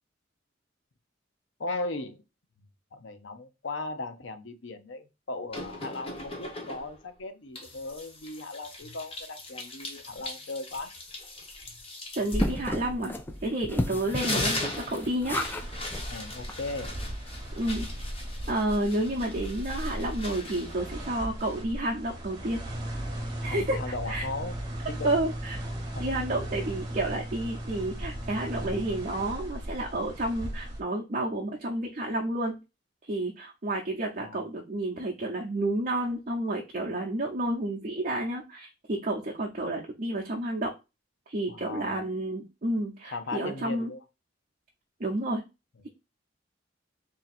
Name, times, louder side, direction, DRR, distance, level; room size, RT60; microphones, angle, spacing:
voice 1, 1.6-2.2 2.9-10.9 14.1-14.6 16.1-17.0 23.5-24.6 24.9-25.1 25.9-26.0 34.2-34.4 41.5-42.0 43.0-44.0, left 2 dB, 75° left, 0.7 m, -37 dB
sound 1, 5.5-7.1 7.6-13.6 13.9-21.8, left 2 dB, 30° left, 1.0 m, -39 dB
voice 2, 12.1-13.1 13.4-15.4 17.6-17.9 18.5-22.6 23.4-23.8 24.1-24.3 25.0-25.6 26.0-32.6 33.0-40.7 41.3-43.9 45.0-45.4, right 1 dB, 40° right, 0.7 m, -30 dB
sound 2, 12.3-15.7 15.9-16.0 16.5-16.6 16.8-16.9, left 1 dB, 10° left, 0.4 m, -32 dB
sound 3, 15.4-30.8, right 1 dB, 20° right, 1.1 m, -37 dB
3.6 x 2.8 x 4.1 m
head